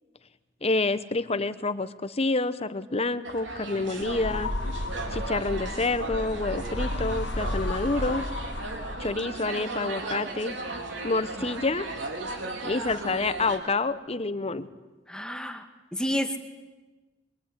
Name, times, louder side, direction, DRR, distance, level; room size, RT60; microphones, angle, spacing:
voice 1, 0.6-4.5 5.1-8.2 9.0-10.6 11.0-11.9 12.6-14.7, left 3 dB, 35° left, 13 dB, 1.1 m, -28 dB
sound 1, 3.2-13.6, right 2 dB, 70° right, 4.2 m, -36 dB
sound 2, 4.0-9.3, left 1 dB, 65° left, 2.1 m, -33 dB
voice 2, 15.1-15.7 15.9-16.4, equal, 5° left, 6 dB, 1.9 m, -29 dB
24.0 x 23.0 x 9.9 m, 1.2 s
head